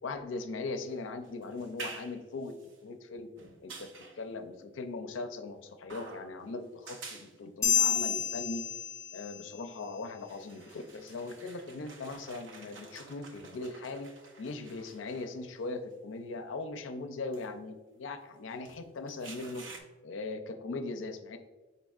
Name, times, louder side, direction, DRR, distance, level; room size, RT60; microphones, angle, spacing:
voice 1, 0.0-2.5 2.8-3.3 3.6-3.9 4.2-8.6 9.1-14.1 14.4-19.6 20.0-21.4, left 3 dB, 90° left, 7 dB, 0.4 m, -39 dB
sound 1, 0.9-2.8 3.4-4.2 5.9-6.5 6.8-7.3 7.8-7.9 9.7-9.8 10.2-15.6 16.3-16.4 17.3-17.5 18.5-19.8, right 3 dB, 85° right, 0.7 m, -49 dB
sound 2, 7.6-9.5, left 8 dB, 15° left, 0.4 m, -29 dB
5.2 x 4.0 x 2.4 m, 1.2 s
head